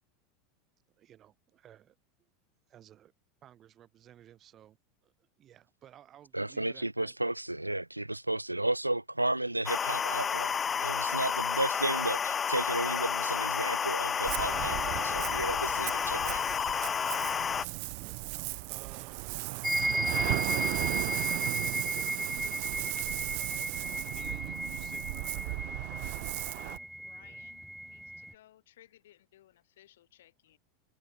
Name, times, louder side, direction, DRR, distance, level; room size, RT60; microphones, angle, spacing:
voice 1, 1.0-2.3 2.7-3.1 3.4-4.8 5.0-7.2 18.0-22.1 23.3-27.5, right 11 dB, 35° right, 5.2 m, -57 dB
voice 2, 6.3-16.4, right 1 dB, 85° right, 0.9 m, -33 dB
sound 1, 9.7-17.7, left 7 dB, 25° left, 0.7 m, -31 dB
Ocean, 14.2-26.8, right 34 dB, 50° right, 1.2 m, -36 dB
sound 2, 19.6-28.3, right 1 dB, ahead, 0.9 m, -35 dB
voice 3, 27.0-30.6, left 13 dB, 60° left, 6.6 m, -60 dB
figure-of-eight pair, 80°, 0 cm